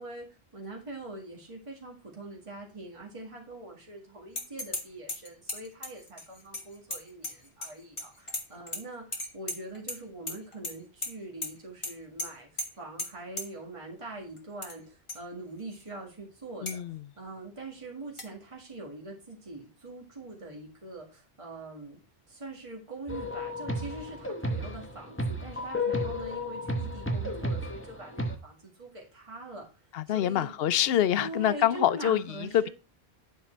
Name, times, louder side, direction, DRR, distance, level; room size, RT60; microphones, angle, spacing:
voice 1, 0.0-16.8 17.2-22.0 22.3-29.7 30.1-30.5 31.2-32.7, right 2 dB, 30° right, 1.9 m, -43 dB
sound 1, 4.4-4.8 5.1-7.7 8.0-8.8 9.1-10.0 10.3-10.7 11.0-11.1 11.4-11.5 11.8-11.9 12.2-12.3 12.6-12.7 13.0-13.1 13.4-13.5 14.4-14.7 15.1-15.2 15.7-15.8 16.7-16.8 18.2-18.3, left 1 dB, 30° left, 1.4 m, -35 dB
voice 2, 16.6-17.0 29.9-32.7, left 11 dB, 70° left, 0.8 m, -26 dB
sound 2, 23.1-28.4, left 1 dB, 10° left, 1.1 m, -32 dB
9.6 x 4.6 x 4.4 m
omnidirectional pair, 1.1 m